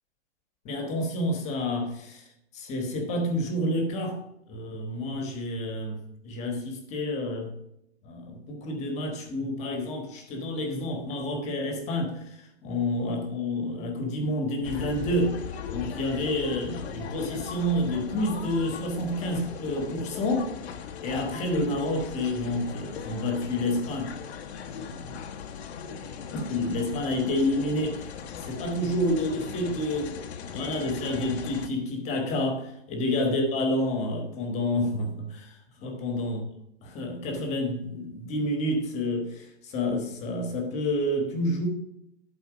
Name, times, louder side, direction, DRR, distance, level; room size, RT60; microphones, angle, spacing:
voice 1, 0.6-2.2 2.5-4.2 4.5-7.5 8.0-12.2 12.6-15.4 15.7-20.5 21.0-24.1 24.7-25.2 26.3-28.1 28.3-30.2 30.5-36.4 36.8-41.7, left 1 dB, 20° left, 1.3 m, -29 dB
sound 1, 14.6-31.7, left 7 dB, 70° left, 1.0 m, -39 dB
11.5 x 4.3 x 4.9 m
hypercardioid pair, 155°, 33 cm